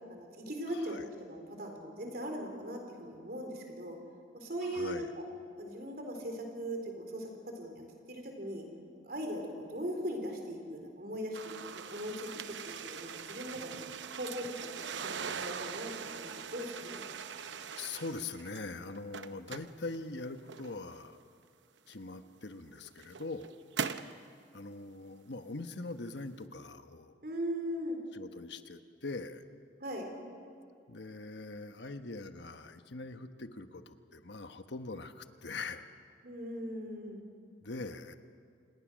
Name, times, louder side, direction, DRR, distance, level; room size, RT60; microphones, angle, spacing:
voice 1, 0.1-4.0 4.3-5.1 5.6-7.8 8.1-8.6 9.0-12.3 12.7-13.8 14.2-14.7 15.0-17.0 27.2-28.0 29.8-30.1 36.2-37.2, equal, 55° right, 3 dB, 3.9 m, -39 dB
voice 2, 0.7-1.0 4.6-5.1 17.8-21.2 21.9-23.5 24.5-27.1 28.1-29.4 30.9-35.9 37.6-38.1, left 3 dB, 70° left, 9 dB, 1.1 m, -42 dB
sound 1, 11.3-18.6 19.0-21.0 21.9-22.0 22.7-24.2, right 6 dB, 80° right, 0.8 m, -41 dB
27.5 x 19.5 x 6.3 m, 2.4 s
head